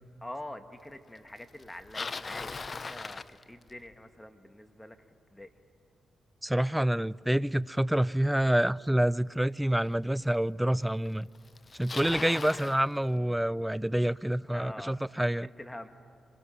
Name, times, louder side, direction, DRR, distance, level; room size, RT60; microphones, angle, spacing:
voice 1, 0.2-5.0 5.3-5.5 12.4-12.7 14.5-15.0 15.4-15.9, left 1 dB, 15° left, 1.6 m, -45 dB
Bicycle, 1.6-3.9 9.0-9.1 9.9-10.0 11.1-11.2 11.4-12.8, left 4 dB, 40° left, 0.6 m, -39 dB
voice 2, 6.4-11.3 11.7-15.5, right 1 dB, 5° right, 0.4 m, -27 dB
26.0 x 20.5 x 5.9 m
supercardioid pair, 55°, 0 cm